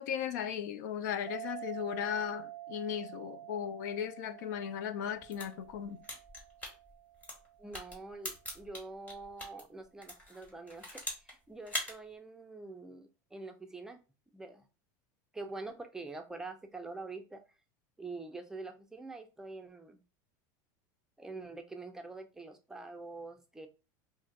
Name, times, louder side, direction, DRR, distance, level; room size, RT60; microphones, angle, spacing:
voice 1, 0.0-6.0, left 9 dB, 80° left, 0.4 m, -36 dB
sound 1, 1.3-8.3, right 15 dB, 75° right, 0.4 m, -48 dB
sound 2, 5.2-9.6 10.0-11.3 11.6-11.9, left 1 dB, 15° left, 1.3 m, -41 dB
voice 2, 7.6-14.0 14.3-14.7 15.3-17.4 18.0-20.0 21.2-23.7, right 3 dB, 5° right, 0.4 m, -45 dB
2.5 x 2.4 x 3.9 m
supercardioid pair, 145°, 10 cm